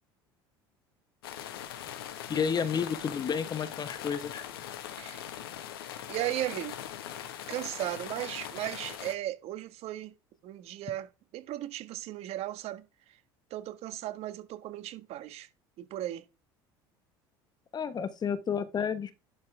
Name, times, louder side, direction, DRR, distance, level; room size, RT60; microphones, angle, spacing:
sound 1, 1.2-9.1, left 10 dB, 80° left, 1.3 m, -41 dB
voice 1, 2.3-4.5 17.7-19.1, left 7 dB, 35° left, 1.2 m, -31 dB
voice 2, 6.1-6.8 7.5-10.1 10.4-12.8 13.5-15.5 15.8-16.2, right 14 dB, 55° right, 1.5 m, -36 dB
11.5 x 4.2 x 3.3 m
hypercardioid pair, 75°, 12 cm